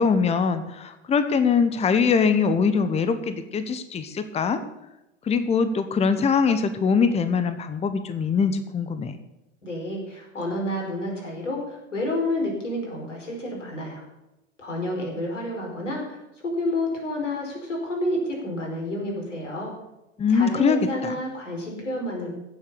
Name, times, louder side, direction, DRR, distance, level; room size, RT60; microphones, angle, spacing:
voice 1, 0.0-4.6 5.3-9.2 20.2-21.1, left 5 dB, 15° left, 10 dB, 1.1 m, -22 dB
voice 2, 9.6-14.0 14.6-16.2 16.4-19.7 20.3-22.3, left 1 dB, 80° left, 0 dB, 4.9 m, -29 dB
15.5 x 7.5 x 6.8 m, 0.95 s
figure-of-eight pair, 85°, 37 cm